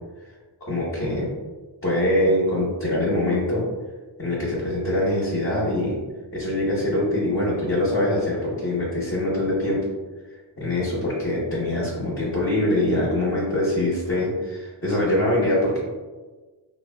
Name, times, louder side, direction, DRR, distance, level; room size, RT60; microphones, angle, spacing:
voice 1, 0.6-1.3 1.8-3.6 4.2-6.0 6.3-9.8 10.6-15.8, left 1 dB, 30° left, -8 dB, 0.9 m, -23 dB
3.2 x 2.3 x 2.2 m, 1.3 s
wide cardioid pair, 90°, 47 cm